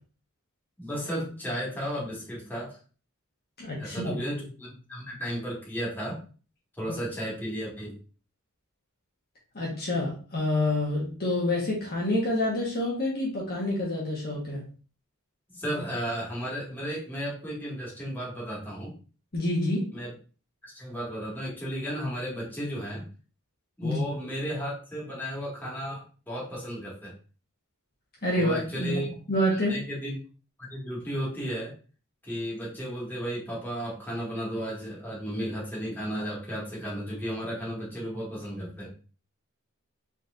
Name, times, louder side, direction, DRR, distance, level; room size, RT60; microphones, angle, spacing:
voice 1, 0.8-2.8 3.8-6.2 6.8-8.0 15.5-18.9 19.9-20.1 20.6-23.1 23.8-27.1 28.4-29.1 29.5-30.2 30.6-31.7 32.2-39.0, equal, 10° left, -5 dB, 2.0 m, -34 dB
voice 2, 3.6-4.1 9.5-14.6 19.3-19.9 23.8-24.0 28.2-28.9 29.3-29.8, left 1 dB, 45° left, -4 dB, 1.4 m, -27 dB
4.4 x 4.1 x 2.6 m, 0.37 s
head